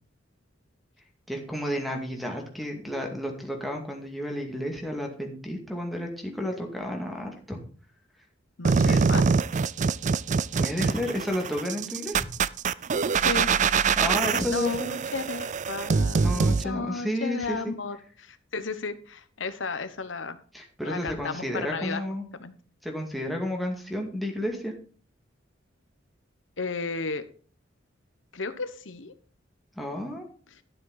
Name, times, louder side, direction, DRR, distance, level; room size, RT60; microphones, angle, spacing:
voice 1, 1.3-7.6 8.7-9.0 10.5-12.3 14.0-15.0 16.2-17.7 20.5-22.3 22.8-24.7 29.8-30.3, equal, ahead, 2 dB, 2.3 m, -31 dB
voice 2, 8.6-9.2 13.2-13.5 14.1-20.4 20.8-22.0 22.3-22.5 26.6-27.2 28.3-29.1, left 4 dB, 85° left, 11 dB, 1.2 m, -34 dB
sound 1, 8.6-16.6, right 5 dB, 40° right, 0.4 m, -24 dB
12.5 x 7.5 x 4.1 m, 0.41 s
head